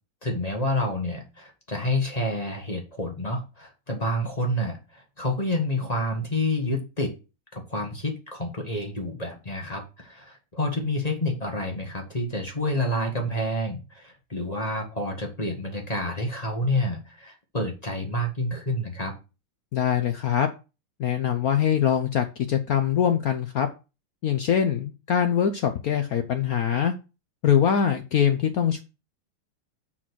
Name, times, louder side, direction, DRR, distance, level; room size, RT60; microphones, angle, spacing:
voice 1, 0.2-7.1 7.5-19.1, left 1 dB, 20° left, 2 dB, 1.2 m, -28 dB
voice 2, 19.7-20.5 21.0-23.7 24.2-26.9 27.4-28.8, left 8 dB, 80° left, 7 dB, 0.8 m, -23 dB
7.6 x 4.1 x 6.1 m, 0.30 s
omnidirectional pair, 2.4 m